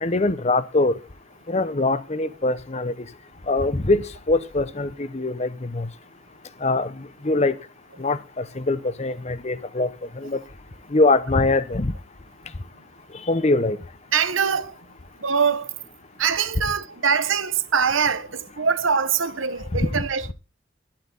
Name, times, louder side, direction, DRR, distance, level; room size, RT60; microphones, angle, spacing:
voice 1, 0.0-1.0 1.5-2.9 3.5-5.9 6.6-6.9 7.2-7.6 8.0-9.9 10.2-10.4 10.9-11.9 13.3-13.8 19.9-20.0, left 2 dB, 30° left, 0.8 m, -22 dB
voice 2, 14.1-14.7 15.2-15.7 16.2-20.3, right 6 dB, 70° right, 1.0 m, -23 dB
12.0 x 11.5 x 3.9 m
head